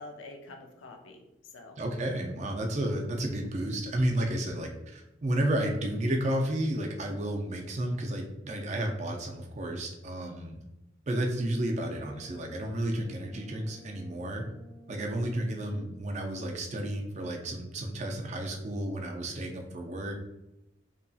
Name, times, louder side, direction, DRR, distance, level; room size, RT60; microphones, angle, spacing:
voice 1, 0.0-1.8 15.6-15.8, left 2 dB, 85° left, 3 dB, 0.5 m, -47 dB
voice 2, 1.8-10.6 11.1-14.5 14.9-20.1, right 1 dB, 35° right, 2 dB, 0.4 m, -32 dB
Brass instrument, 11.4-15.7, equal, 65° right, 0.7 m, -54 dB
2.8 x 2.6 x 2.3 m, 0.94 s
head